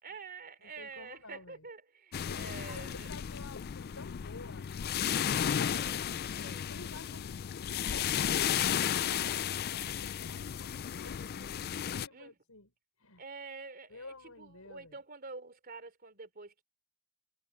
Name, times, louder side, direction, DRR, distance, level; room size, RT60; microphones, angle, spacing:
voice 1, 0.0-3.1 5.7-6.7 12.1-12.3 13.2-16.6, right 4 dB, 45° right, 3.5 m, -47 dB
voice 2, 0.6-1.6 2.2-6.2 6.7-7.3 7.6-11.6 11.9-12.7 13.0-13.2 13.9-15.0, left 3 dB, 85° left, 6.1 m, -52 dB
sound 1, 2.1-12.1, left 9 dB, 45° left, 0.4 m, -34 dB
head